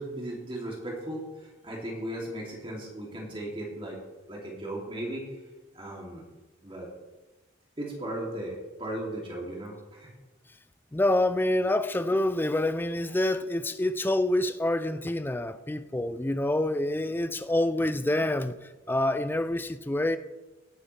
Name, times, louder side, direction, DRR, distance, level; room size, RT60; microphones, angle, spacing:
voice 1, 0.0-4.0 4.3-5.3 5.7-6.3 6.6-6.9 7.8-10.1 11.7-11.8, right 1 dB, 25° right, -3 dB, 2.9 m, -36 dB
voice 2, 10.9-20.2, left 1 dB, 10° left, 11 dB, 0.4 m, -27 dB
17.5 x 9.9 x 3.4 m, 1.2 s
head